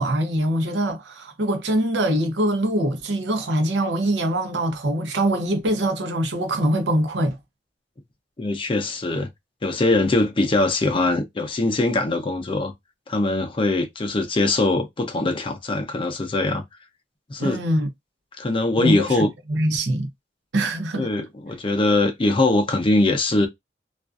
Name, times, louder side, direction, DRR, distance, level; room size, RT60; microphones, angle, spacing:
voice 1, 0.0-7.4 17.4-17.9 18.8-20.1 20.5-21.1, right 1 dB, 85° right, 0.7 m, -23 dB
voice 2, 8.4-9.3 9.6-12.7 13.1-16.6 17.3-17.6 18.4-19.3 21.0-23.5, left 2 dB, 30° left, 0.5 m, -22 dB
2.4 x 2.4 x 2.3 m
head